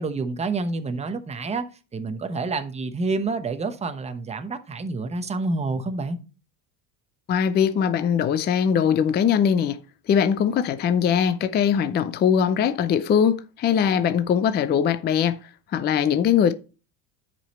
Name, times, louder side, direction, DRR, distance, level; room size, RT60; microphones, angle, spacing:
voice 1, 0.0-6.2, right 3 dB, 15° right, 0.9 m, -28 dB
voice 2, 7.3-9.8 10.1-15.4 15.7-16.5, left 8 dB, 20° left, 0.5 m, -21 dB
9.9 x 5.2 x 4.2 m
cardioid pair, 145°, 48 cm